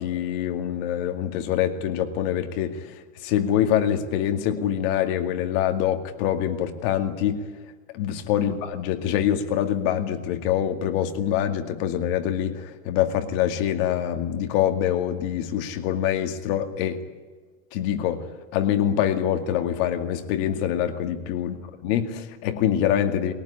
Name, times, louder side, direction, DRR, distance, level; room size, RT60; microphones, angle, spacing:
voice 1, 0.0-7.5 7.9-17.0 17.7-23.3, left 10 dB, 45° left, 6 dB, 2.3 m, -25 dB
21.5 x 18.5 x 10.0 m, 1.4 s
supercardioid pair, 160°, 40 cm